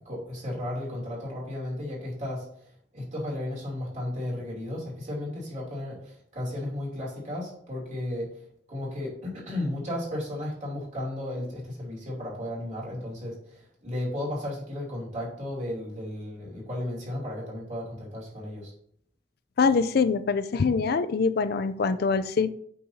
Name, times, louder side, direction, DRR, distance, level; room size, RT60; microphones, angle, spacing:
voice 1, 0.0-2.4 2.9-8.3 8.7-18.7, left 1 dB, 45° right, -4 dB, 2.9 m, -34 dB
voice 2, 19.6-22.5, left 5 dB, 60° left, 13 dB, 0.4 m, -24 dB
8.4 x 5.5 x 2.7 m, 0.66 s
head